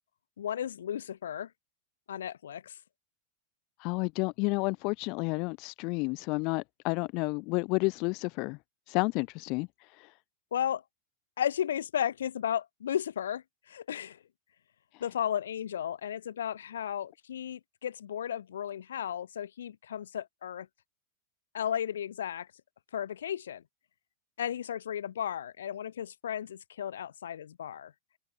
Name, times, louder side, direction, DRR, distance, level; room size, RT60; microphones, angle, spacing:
voice 1, 0.4-1.5 2.1-2.8 10.5-10.8 11.4-14.2 15.0-20.7 21.5-22.5 22.9-23.6 24.4-27.9, left 9 dB, 65° left, 1.5 m, -34 dB
voice 2, 3.8-8.6 8.9-9.7 10.0-10.1, left 29 dB, 45° left, 0.5 m, -30 dB
figure-of-eight pair, 90°, 0 cm